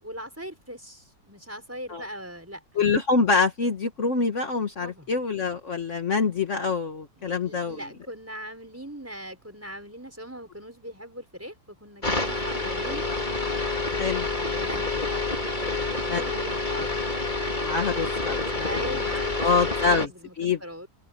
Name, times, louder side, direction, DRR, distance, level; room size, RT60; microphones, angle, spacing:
voice 1, 0.0-2.6 4.8-5.1 7.2-13.1 14.2-15.0 15.6-17.1 18.6-20.3 20.6-20.9, equal, 10° right, 4.9 m, -40 dB
voice 2, 2.8-7.8 14.0-14.3 14.7-14.8 16.1-16.3 16.7-16.8 17.6-18.7 19.4-20.1 20.4-20.6, left 4 dB, 50° left, 1.6 m, -25 dB
sound 1, 12.0-20.1, left 3 dB, 30° left, 3.9 m, -28 dB
omnidirectional pair, 1.7 m